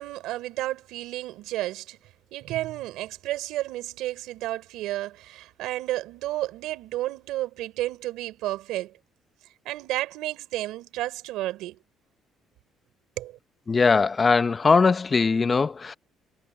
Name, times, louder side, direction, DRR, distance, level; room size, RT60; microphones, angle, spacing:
voice 1, 0.0-2.0 2.3-9.0 9.6-11.8 13.2-13.4, right 16 dB, 85° right, 4.2 m, -32 dB
voice 2, 13.7-15.9, left 4 dB, 30° left, 1.0 m, -20 dB
cardioid pair, 105°, 0 cm